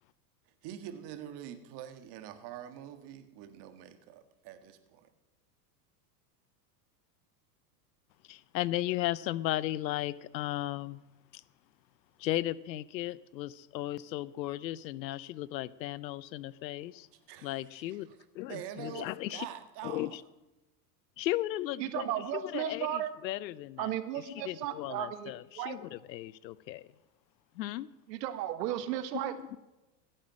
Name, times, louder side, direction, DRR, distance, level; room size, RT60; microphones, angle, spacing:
voice 1, 0.6-5.1 17.3-18.2 18.5-20.2, right 10 dB, 50° right, 8 dB, 1.7 m, -45 dB
voice 2, 8.3-11.0 11.3-11.4 12.2-17.1 17.4-18.1 18.3-19.5 19.8-20.2 21.2-26.9 27.6-27.9 29.4-29.6, left 15 dB, 90° left, 19 dB, 0.7 m, -36 dB
voice 3, 21.8-23.1 23.8-25.8 28.1-29.3, right 12 dB, 75° right, 10 dB, 1.5 m, -35 dB
15.5 x 8.9 x 6.3 m, 1.0 s
supercardioid pair, 115°, 50 cm